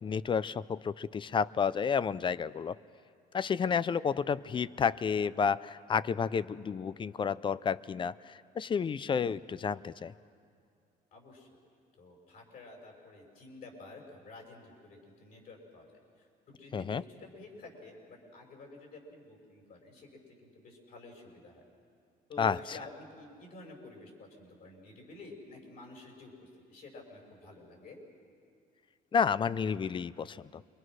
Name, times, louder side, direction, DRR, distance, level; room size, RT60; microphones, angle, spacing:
voice 1, 0.0-2.8 3.3-10.1 16.7-17.0 22.4-22.8 29.1-30.6, left 6 dB, 30° left, 19 dB, 0.5 m, -31 dB
voice 2, 11.1-11.5 12.0-15.9 16.2-21.6 22.3-28.0, left 2 dB, 60° left, 1 dB, 6.1 m, -50 dB
28.0 x 23.0 x 6.3 m, 2.3 s
cardioid pair, 110°, 17 cm